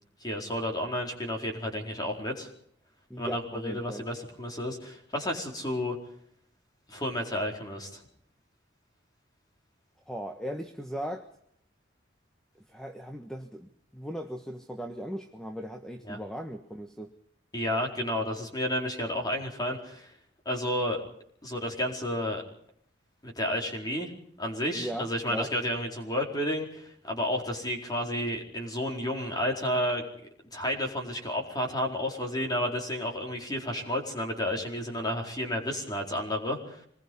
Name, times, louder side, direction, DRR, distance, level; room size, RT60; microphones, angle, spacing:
voice 1, 0.2-2.5 3.2-6.0 6.9-8.0 16.1-16.2 17.5-20.1 20.4-21.0 21.4-22.4 23.2-24.1 24.4-30.1 30.5-36.9, left 1 dB, 20° left, 1 dB, 4.6 m, -31 dB
voice 2, 3.1-4.0 10.1-11.3 12.7-17.1 24.7-25.5, equal, 5° left, 5 dB, 1.3 m, -38 dB
26.0 x 21.0 x 5.5 m, 0.66 s
head